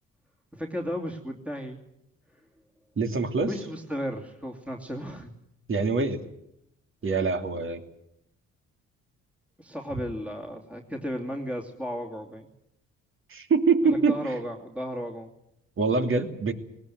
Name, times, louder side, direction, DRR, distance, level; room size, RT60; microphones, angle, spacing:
voice 1, 0.5-1.8 3.5-5.3 7.1-7.2 9.6-12.5 13.8-15.3, equal, 5° right, 1 dB, 2.7 m, -34 dB
voice 2, 3.0-3.5 5.7-6.2 7.0-7.8 13.3-14.3 15.8-16.5, right 4 dB, 45° right, 6 dB, 2.7 m, -24 dB
19.5 x 19.0 x 9.5 m, 0.79 s
cardioid pair, 90°, 30 cm